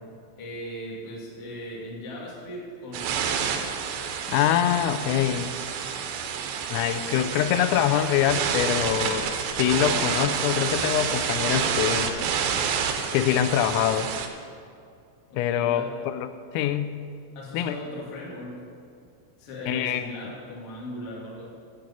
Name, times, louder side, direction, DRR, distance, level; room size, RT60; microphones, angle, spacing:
voice 1, 0.4-3.5 7.0-7.4 15.3-16.0 17.3-18.6 19.4-21.5, left 1 dB, 50° left, -4 dB, 1.6 m, -38 dB
sound 1, 2.9-14.3, right 7 dB, 85° right, 2.6 m, -28 dB
voice 2, 4.3-5.5 6.7-12.2 13.1-14.1 15.4-16.3 16.5-17.0 17.5-17.8 19.7-20.1, left 11 dB, 85° left, 10 dB, 3.2 m, -24 dB
9.1 x 7.6 x 6.9 m, 2.3 s
omnidirectional pair, 5.9 m